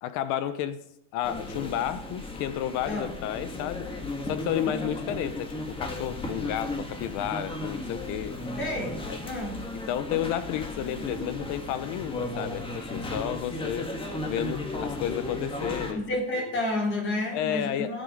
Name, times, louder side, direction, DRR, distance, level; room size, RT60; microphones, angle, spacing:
voice 1, 0.0-0.8 1.1-3.9 4.3-8.3 9.1-9.2 9.7-13.9 14.2-16.0 16.3-16.4 17.3-18.0, left 11 dB, 55° left, 13 dB, 1.0 m, -31 dB
sound 1, 1.2-15.9, left 2 dB, 15° left, 2.2 m, -35 dB
voice 2, 8.6-9.7 15.9-18.0, left 1 dB, 35° left, 1 dB, 4.2 m, -31 dB
19.5 x 7.7 x 5.4 m, 0.76 s
cardioid pair, 145°, 35 cm